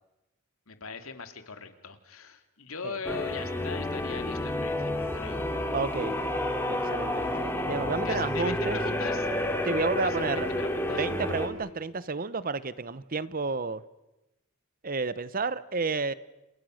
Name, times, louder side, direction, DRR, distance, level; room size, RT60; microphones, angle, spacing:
voice 1, 0.7-5.5 8.0-9.3 10.0-11.0, left 5 dB, 75° left, 8 dB, 2.6 m, -40 dB
sound 1, 3.0-11.5, left 1 dB, 10° left, 3.2 m, -30 dB
voice 2, 5.7-6.2 6.6-8.8 9.7-10.5 10.9-13.8 14.8-16.1, right 4 dB, 40° right, 16 dB, 0.9 m, -31 dB
29.5 x 28.0 x 6.5 m, 0.99 s
head